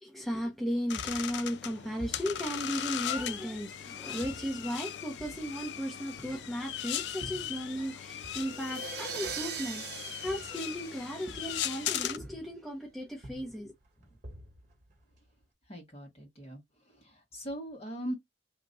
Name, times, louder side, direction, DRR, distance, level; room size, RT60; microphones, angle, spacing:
voice 1, 0.0-13.7, equal, ahead, 0.8 m, -36 dB
sound 1, 0.9-12.2, left 10 dB, 70° left, 0.3 m, -38 dB
sound 2, 0.9-3.8 4.2-7.9 8.2-11.9 12.2-12.8 13.1-15.4, equal, 45° right, 1.3 m, -50 dB
sound 3, 8.4-11.7, right 7 dB, 65° right, 0.5 m, -41 dB
voice 2, 15.7-18.1, equal, 35° left, 1.5 m, -41 dB
2.9 x 2.4 x 4.0 m
head